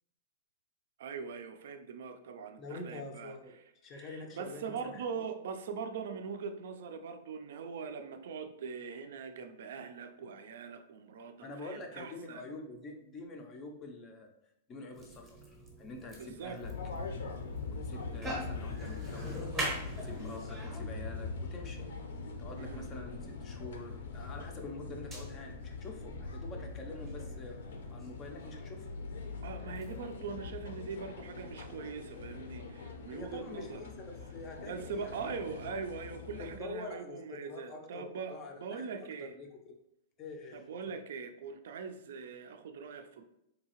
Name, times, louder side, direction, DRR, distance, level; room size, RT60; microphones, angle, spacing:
voice 1, 1.0-3.4 3.9-12.5 16.2-16.6 22.6-22.9 29.4-33.8 34.6-39.4 40.5-43.3, right 5 dB, 65° right, 8 dB, 0.4 m, -42 dB
voice 2, 2.6-3.5 3.8-5.3 11.4-14.3 14.7-16.7 17.7-19.6 20.0-21.8 22.4-27.6 27.9-28.9 33.1-35.3 36.4-38.8 39.2-39.7 40.2-40.6 40.9-41.0, left 2 dB, 20° left, 3 dB, 0.4 m, -46 dB
sound 1, 14.9-30.1, right 1 dB, 10° right, 0.7 m, -44 dB
sound 2, 16.6-36.6, left 4 dB, 75° left, 0.6 m, -42 dB
3.9 x 2.7 x 2.9 m, 0.81 s
supercardioid pair, 175°, 0 cm